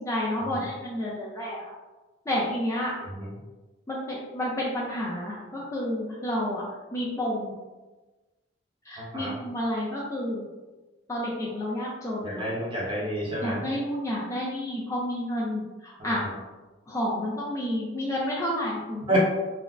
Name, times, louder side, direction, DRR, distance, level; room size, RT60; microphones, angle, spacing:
voice 1, 0.0-1.6 2.3-2.9 3.9-6.6 6.9-7.5 8.9-10.5 11.1-12.4 13.4-16.2 16.9-19.2, left 1 dB, 15° left, -6 dB, 0.4 m, -30 dB
voice 2, 9.0-9.3 12.2-13.6 16.0-16.3 19.1-19.2, right 1 dB, 25° right, -6 dB, 0.9 m, -29 dB
3.3 x 2.0 x 2.4 m, 1.2 s
head